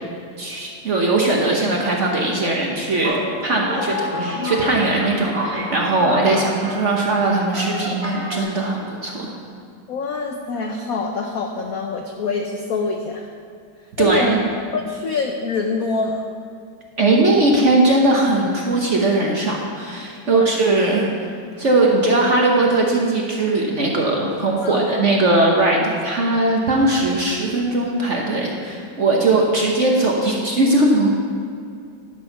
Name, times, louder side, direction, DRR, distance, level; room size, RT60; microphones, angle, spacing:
voice 1, 0.4-3.1 3.4-9.3 14.0-14.4 17.0-31.1, right 2 dB, 50° right, -1 dB, 1.0 m, -19 dB
sound 1, 3.0-8.4, left 1 dB, 15° right, 1.5 m, -29 dB
voice 2, 9.9-13.3 14.0-14.4 14.7-16.3 20.3-20.5 24.6-25.1, left 4 dB, 75° left, 3 dB, 0.8 m, -25 dB
11.5 x 6.3 x 5.7 m, 2.4 s
omnidirectional pair, 2.3 m